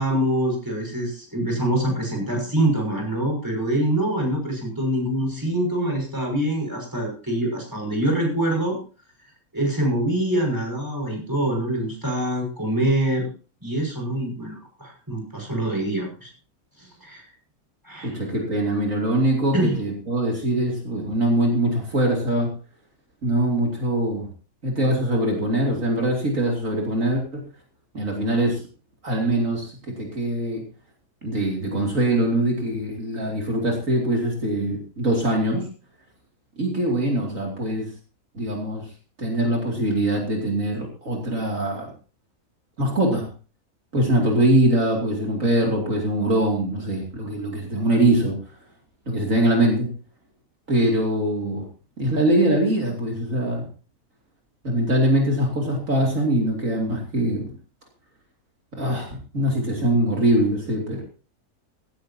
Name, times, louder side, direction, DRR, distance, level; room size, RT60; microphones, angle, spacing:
voice 1, 0.0-8.8 9.5-13.3 13.6-16.3 16.8-17.3 17.8-18.1 19.5-19.8, right 1 dB, 15° right, 1 dB, 5.8 m, -25 dB
voice 2, 18.0-22.5 23.2-24.3 24.6-27.4 27.9-28.6 29.0-30.6 31.2-35.7 36.6-37.9 38.3-38.9 39.2-41.9 42.8-43.3 43.9-48.4 49.1-49.9 50.7-51.7 52.0-53.7 54.6-57.5 58.7-61.0, right 1 dB, 60° right, 0 dB, 3.1 m, -22 dB
16.5 x 14.5 x 2.8 m, 0.37 s
omnidirectional pair, 1.5 m